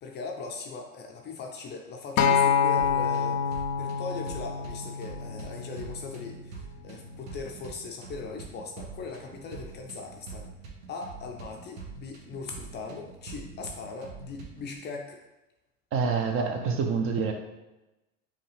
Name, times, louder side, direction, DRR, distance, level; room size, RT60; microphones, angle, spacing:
voice 1, 0.0-10.5 10.9-15.2, left 4 dB, 25° left, 2 dB, 0.4 m, -39 dB
Acoustic guitar, 2.2-6.4 7.3-7.4, left 7 dB, 75° left, 0.6 m, -27 dB
sound 1, 2.8-14.8, right 4 dB, 85° right, 1.2 m, -45 dB
voice 2, 15.9-17.3, right 5 dB, 35° right, 4 dB, 0.5 m, -26 dB
5.4 x 2.3 x 3.3 m, 1.0 s
supercardioid pair, 115°, 40 cm